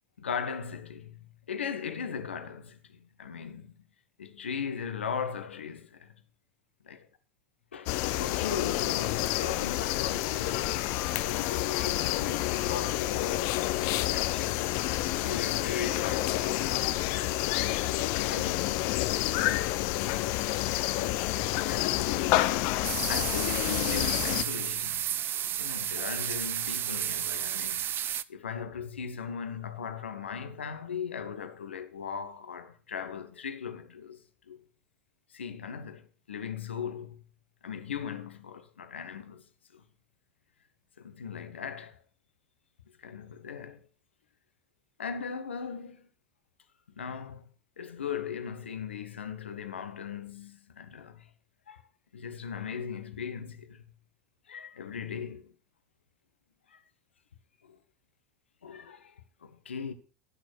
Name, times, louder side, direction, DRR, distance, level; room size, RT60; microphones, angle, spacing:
voice 1, 0.2-1.2 1.5-3.7 4.2-6.1 6.8-7.0 7.7-10.8 11.2-17.4 18.3-19.7 21.2-22.6 23.1-34.2 34.5-34.6 35.3-37.2 37.6-39.5 39.7-39.8 41.0-42.0 43.0-43.9 45.0-46.1 47.0-47.4 47.8-51.3 51.7-51.8 52.1-53.8 54.5-55.5 56.7-56.8 57.6-57.8 58.6-59.9, left 7 dB, 80° left, 1.1 m, -38 dB
sound 1, 7.9-24.4, left 16 dB, 55° left, 0.8 m, -29 dB
sound 2, 22.8-28.2, right 10 dB, 35° right, 0.6 m, -32 dB
11.0 x 6.3 x 6.1 m
figure-of-eight pair, 80°, 6 cm